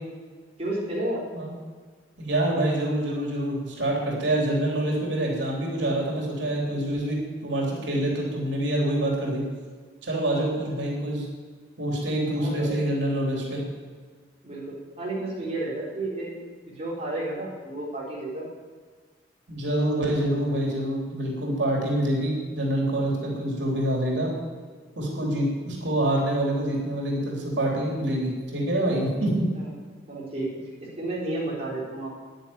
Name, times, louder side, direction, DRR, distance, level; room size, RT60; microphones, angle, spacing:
voice 1, 0.6-1.2 12.4-12.8 14.4-18.5 29.6-29.7 30.1-30.5 31.0-32.2, right 2 dB, 35° right, -5 dB, 4.0 m, -32 dB
voice 2, 2.2-9.4 10.0-11.3 11.8-13.6 19.5-24.3 25.0-29.5, right 1 dB, 85° right, -2 dB, 3.5 m, -26 dB
10.5 x 10.5 x 8.8 m, 1.5 s
head